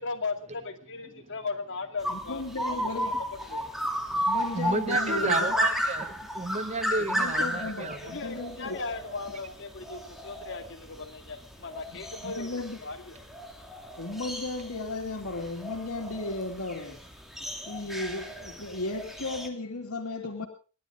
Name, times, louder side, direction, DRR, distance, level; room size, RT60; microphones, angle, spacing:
voice 1, 0.0-3.7 7.4-7.5 8.0-12.5 12.8-13.2, left 4 dB, 60° left, 2.3 m, -37 dB
sound 1, 2.0-19.5, equal, ahead, 2.9 m, -33 dB
voice 2, 2.1-3.2 4.1-5.5 7.0-8.8 11.9-12.8 14.0-17.0 17.7-20.5, left 2 dB, 90° left, 2.5 m, -35 dB
voice 3, 4.5-8.0, right 3 dB, 30° right, 0.8 m, -31 dB
28.5 x 11.5 x 3.8 m
head